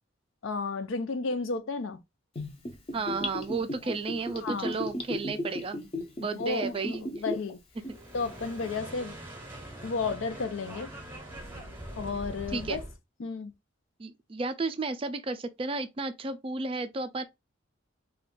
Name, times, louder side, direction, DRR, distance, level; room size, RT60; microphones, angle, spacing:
voice 1, 0.4-2.0 3.9-4.0 4.4-4.8 6.2-7.6 8.1-9.1 9.8-10.9 12.0-12.8 13.2-13.5, left 4 dB, 85° left, 0.5 m, -33 dB
Gurgling / Bathtub (filling or washing), 2.4-7.5 7.8-7.9, left 1 dB, 30° left, 0.6 m, -34 dB
voice 2, 2.9-5.8 6.2-7.0 12.5-12.8 14.0-17.2, right 3 dB, 30° right, 0.3 m, -33 dB
sound 1, 7.8-13.0, right 1 dB, 10° right, 0.8 m, -43 dB
2.5 x 2.3 x 3.6 m
head